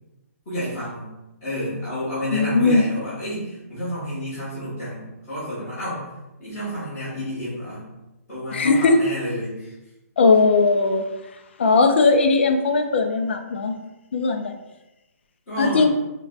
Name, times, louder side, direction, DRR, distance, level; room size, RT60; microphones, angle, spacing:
voice 1, 0.4-1.1 1.4-6.0 6.4-7.9 8.3-9.7 15.5-15.9, equal, 20° left, -15 dB, 1.3 m, -30 dB
voice 2, 2.3-2.8 8.5-9.0 10.2-11.0 11.6-13.7 14.1-14.6 15.6-15.9, left 4 dB, 45° left, 6 dB, 0.3 m, -18 dB
4.5 x 2.2 x 2.4 m, 0.98 s
hypercardioid pair, 175°, 8 cm